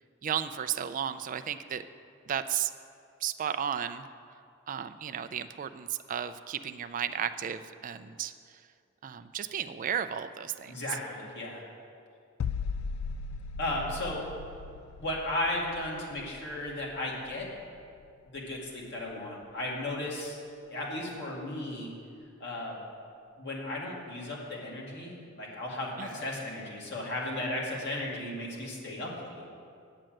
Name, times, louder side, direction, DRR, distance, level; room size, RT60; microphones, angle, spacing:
voice 1, 0.2-1.8 2.3-2.7 3.2-4.1 4.7-8.6 9.0-10.7 26.0-26.1, right 9 dB, 40° right, 10 dB, 0.3 m, -34 dB
voice 2, 10.7-11.6 13.6-14.2 15.0-17.5 18.3-20.4 20.7-21.9 22.4-22.8 23.4-29.4, left 1 dB, 55° left, -3 dB, 2.2 m, -35 dB
sound 1, 12.4-18.1 18.4-18.6, left 5 dB, 90° left, 0.4 m, -38 dB
8.9 x 7.6 x 7.7 m, 2.3 s
head